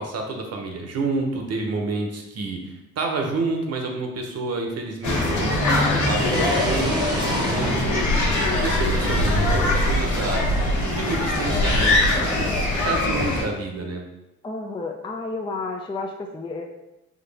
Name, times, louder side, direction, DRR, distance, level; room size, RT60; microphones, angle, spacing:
voice 1, 0.0-8.1 8.5-10.5 10.8-14.0, right 3 dB, 55° right, 3 dB, 0.9 m, -29 dB
sound 1, 5.0-13.4, left 1 dB, 70° left, 1.3 m, -22 dB
sound 2, 6.2-9.0, right 1 dB, 15° right, 0.9 m, -31 dB
voice 2, 7.5-8.6 14.4-16.6, left 3 dB, 15° left, 2 dB, 0.4 m, -32 dB
4.1 x 3.2 x 3.4 m, 0.94 s
cardioid pair, 90°, 30 cm